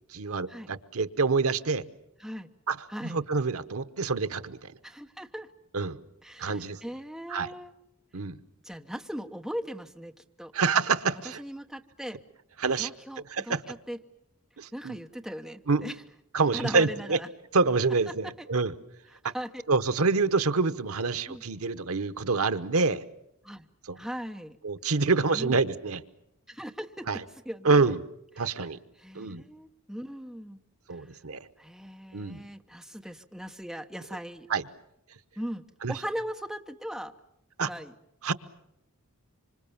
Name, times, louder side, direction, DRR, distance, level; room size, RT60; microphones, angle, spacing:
voice 1, 0.1-1.8 2.7-2.8 3.0-4.7 5.7-6.0 6.4-6.8 7.3-7.5 8.1-8.4 10.5-11.4 12.6-12.9 13.3-13.6 14.6-15.0 15.7-15.8 16.3-17.2 17.5-18.7 19.7-23.0 23.9-24.0 24.6-26.0 27.1-27.2 27.6-28.0 28.4-28.8 29.1-29.4 30.9-31.5 32.1-32.4 34.5-34.6 35.8-35.9 37.6-37.7 38.2-38.3, right 4 dB, 80° right, 11 dB, 1.0 m, -26 dB
voice 2, 2.2-2.5 2.9-3.2 4.8-5.5 6.2-7.7 8.6-10.1 10.4-10.5 11.4-12.2 12.8-14.0 14.7-16.0 16.5-17.3 18.4-18.5 19.1-19.6 21.3-21.4 23.4-23.7 24.0-24.6 25.3-25.6 26.5-27.1 27.4-27.9 28.4-28.7 29.0-30.6 30.9-31.1 31.6-34.5 35.4-37.1 37.6-37.9, equal, ahead, 5 dB, 0.9 m, -39 dB
26.0 x 25.5 x 7.1 m, 0.80 s
head